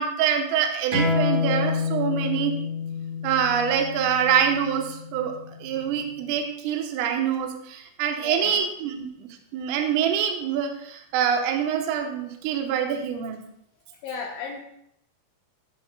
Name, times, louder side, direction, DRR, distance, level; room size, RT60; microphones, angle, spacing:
voice 1, 0.0-2.5 3.2-5.3 5.6-13.4, right 8 dB, 90° right, 4 dB, 3.6 m, -25 dB
sound 1, 0.9-6.1, left 4 dB, 40° right, 5.6 m, -28 dB
voice 2, 8.2-8.6 14.0-14.6, left 6 dB, 75° left, 0 dB, 3.1 m, -33 dB
16.0 x 11.0 x 2.2 m, 0.74 s
omnidirectional pair, 5.7 m